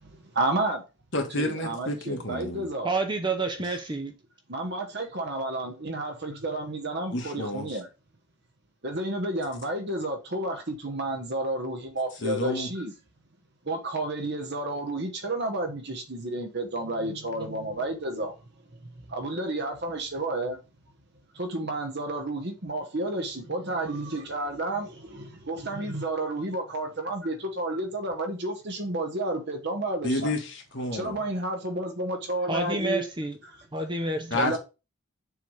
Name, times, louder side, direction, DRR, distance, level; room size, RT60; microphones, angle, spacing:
voice 1, 0.1-0.8 1.3-2.9 4.5-7.9 8.8-12.9 13.6-18.3 19.1-20.6 21.3-30.3 30.9-33.0 34.0-34.6, right 1 dB, 50° right, 1.2 m, -31 dB
voice 2, 1.1-2.7 7.1-7.8 12.2-12.7 30.0-31.2 34.3-34.6, left 1 dB, 55° left, 1.5 m, -30 dB
voice 3, 2.8-4.1 32.5-33.4 33.7-34.4, right 3 dB, 20° right, 0.7 m, -29 dB
6.9 x 3.4 x 4.8 m
head